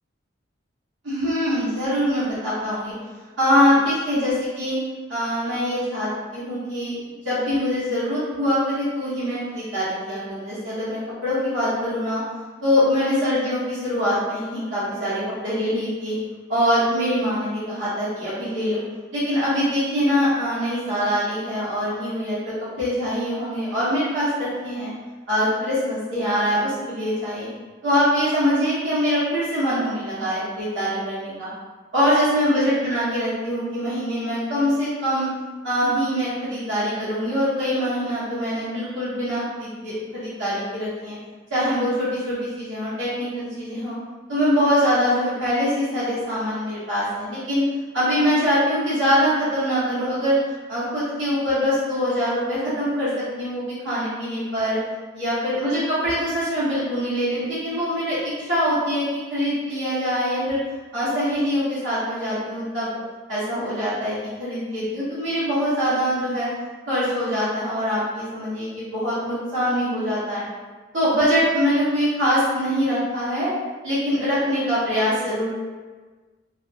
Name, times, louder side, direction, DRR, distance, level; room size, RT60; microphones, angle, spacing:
voice 1, 1.0-2.9 3.4-4.8 5.1-6.9 7.2-12.2 12.6-16.1 16.5-18.8 19.1-24.9 25.3-27.5 27.8-31.5 31.9-35.3 35.6-41.2 41.5-44.0 44.3-47.6 47.9-50.4 50.7-54.8 55.1-60.6 60.9-62.9 63.3-66.5 66.9-70.4 70.9-73.5 73.8-75.6, equal, 70° right, -12 dB, 1.0 m, -23 dB
2.6 x 2.2 x 2.7 m, 1.3 s
head